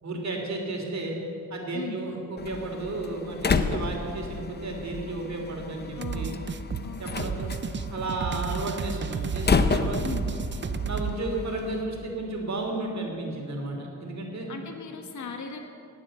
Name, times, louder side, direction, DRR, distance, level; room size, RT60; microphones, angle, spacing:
voice 1, 0.0-1.1 1.5-6.4 7.0-7.5 7.9-10.0 10.8-14.5, right 2 dB, 50° right, 1 dB, 2.9 m, -33 dB
Slam, 2.4-11.8, left 4 dB, 30° left, 0.7 m, -31 dB
voice 2, 6.0-6.4 6.8-7.3 10.0-10.3 14.5-15.6, left 5 dB, 55° left, 4 dB, 1.5 m, -38 dB
sound 1, 6.0-11.2, right 6 dB, 35° right, 0.5 m, -32 dB
19.0 x 8.0 x 7.6 m, 2.6 s
wide cardioid pair, 120°, 34 cm